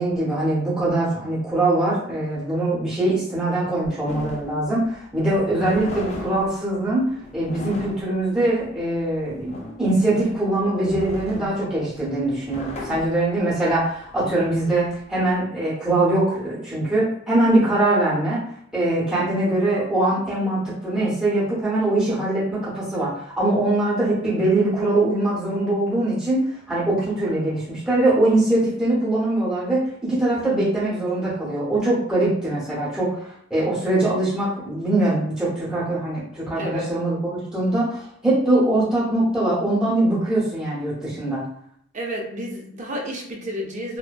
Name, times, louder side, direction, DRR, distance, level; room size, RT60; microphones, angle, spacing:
voice 1, 0.0-18.4 18.7-41.5, right 2 dB, 5° right, -10 dB, 0.7 m, -22 dB
sound 1, 4.1-15.4, left 2 dB, 35° left, 0.3 m, -38 dB
voice 2, 36.6-36.9 41.9-44.0, equal, 40° right, 1 dB, 0.5 m, -31 dB
2.5 x 2.1 x 2.2 m, 0.70 s
head